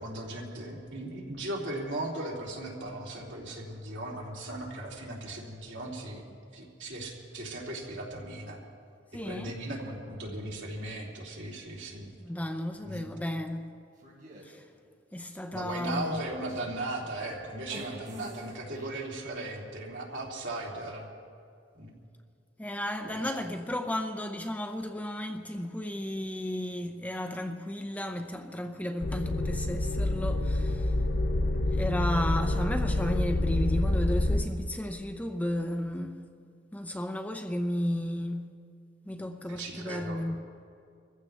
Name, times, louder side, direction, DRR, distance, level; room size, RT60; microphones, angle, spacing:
voice 1, 0.0-6.2 6.5-8.6 9.2-12.1 12.8-13.1 15.5-21.1 21.8-21.9 23.1-23.2 39.5-40.2, right 1 dB, 75° right, 3.0 m, -37 dB
voice 2, 9.1-9.5 12.2-13.7 14.4-14.7 15.1-16.2 22.6-31.0 31.7-36.2 36.7-38.5 39.0-40.4, left 1 dB, 10° left, 0.6 m, -33 dB
sound 1, 14.0-14.4 15.3-18.9, equal, 45° right, 3.9 m, -48 dB
sound 2, 29.0-34.4, left 1 dB, 60° left, 0.7 m, -27 dB
25.5 x 15.0 x 3.4 m
head